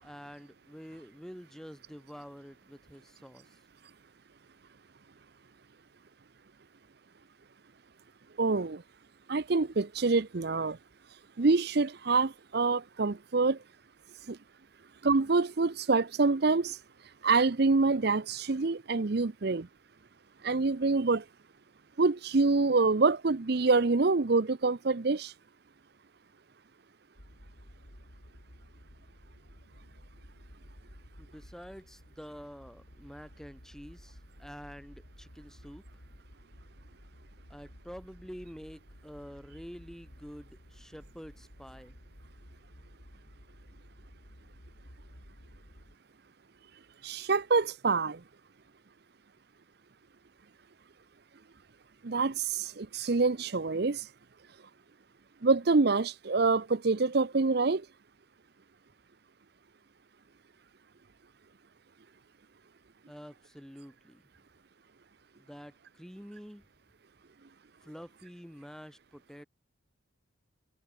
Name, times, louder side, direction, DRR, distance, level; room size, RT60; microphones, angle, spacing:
voice 1, 0.0-3.6 31.2-36.0 37.5-42.0 63.1-64.2 65.4-66.6 67.8-69.5, equal, ahead, 2.9 m, -48 dB
voice 2, 8.4-8.8 9.3-10.8 11.4-13.6 14.3-14.4 15.0-16.8 17.2-19.7 20.4-21.2 22.0-25.3 47.0-48.2 52.0-54.1 55.4-57.8, right 3 dB, 55° right, 0.7 m, -26 dB
sound 1, 27.2-46.0, equal, 90° left, 6.7 m, -54 dB
head